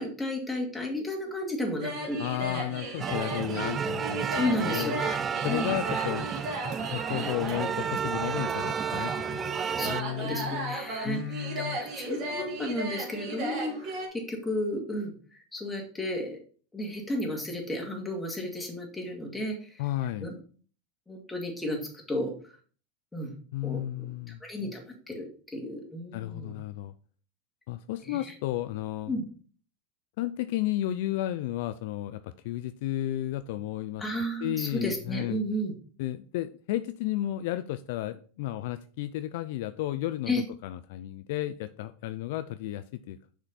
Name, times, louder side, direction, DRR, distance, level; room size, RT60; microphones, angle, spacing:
voice 1, 0.0-2.6 4.3-5.2 5.5-5.7 9.8-9.9 10.2-16.4 16.7-19.8 20.2-20.3 21.1-22.3 23.1-23.3 23.6-24.1 24.4-26.5 28.0-28.3 29.1-29.2 34.0-35.7 40.3-40.4, left 1 dB, 10° left, 1 dB, 2.3 m, -33 dB
sound 1, 1.8-14.1, right 2 dB, 50° right, 2.5 m, -36 dB
voice 2, 2.2-4.9 5.4-6.3 6.9-10.8 11.0-11.8 19.8-20.3 23.5-24.4 26.1-26.9 27.7-29.1 30.2-34.0 34.4-35.4 36.0-43.2, left 14 dB, 65° left, 12 dB, 0.4 m, -33 dB
sound 2, 3.0-10.0, right 7 dB, 30° right, 0.3 m, -32 dB
6.4 x 4.9 x 4.1 m, 0.42 s
hypercardioid pair, 95°, 0 cm